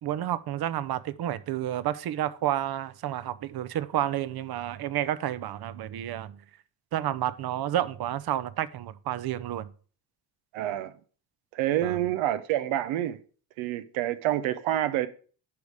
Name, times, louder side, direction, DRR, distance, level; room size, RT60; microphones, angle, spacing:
voice 1, 0.0-6.4 6.9-9.7 11.8-12.0, right 12 dB, 55° right, 0.7 m, -30 dB
voice 2, 10.5-10.9 11.5-13.2 13.6-15.1, right 13 dB, 90° right, 0.7 m, -27 dB
10.5 x 3.6 x 4.8 m
cardioid pair, 90°, 46 cm